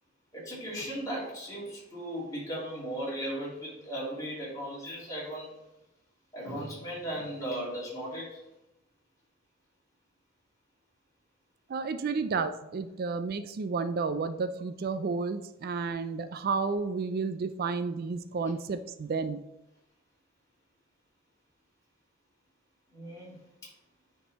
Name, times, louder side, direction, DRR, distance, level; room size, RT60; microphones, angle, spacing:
voice 1, 0.3-5.5 6.3-8.4 11.9-12.1 22.9-23.7, equal, 20° left, -6 dB, 2.7 m, -37 dB
voice 2, 11.7-19.4, right 4 dB, 50° right, 12 dB, 0.4 m, -31 dB
9.4 x 3.7 x 4.1 m, 0.91 s
head